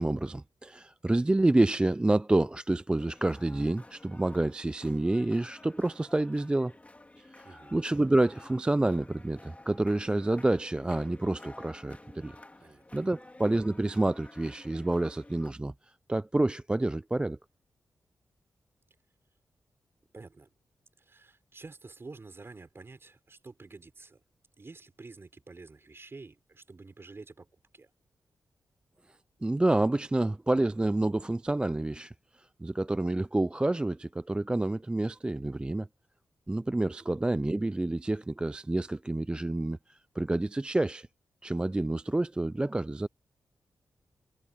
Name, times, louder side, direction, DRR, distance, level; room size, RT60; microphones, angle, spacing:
voice 1, 0.0-6.7 7.2-12.4 12.9-15.7 16.1-17.4 29.4-35.9 36.5-41.1 41.4-43.1, right 2 dB, 15° right, 0.3 m, -28 dB
sound 1, 3.0-15.5, left 2 dB, 20° left, 3.2 m, -52 dB
voice 2, 7.4-7.8 12.6-13.2 20.1-20.5 21.0-24.2 24.6-27.5 27.7-27.9, right 3 dB, 35° right, 4.9 m, -49 dB
cardioid pair, 75°, 7 cm